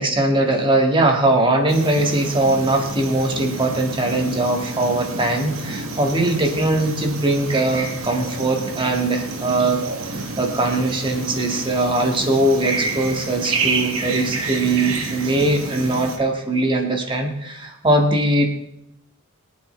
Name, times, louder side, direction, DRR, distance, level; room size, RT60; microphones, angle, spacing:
voice 1, 0.0-9.8 10.1-18.5, right 2 dB, 25° right, 3 dB, 1.9 m, -20 dB
sound 1, 1.7-16.2, right 3 dB, 70° right, 1.9 m, -29 dB
23.5 x 9.0 x 3.4 m, 0.78 s
head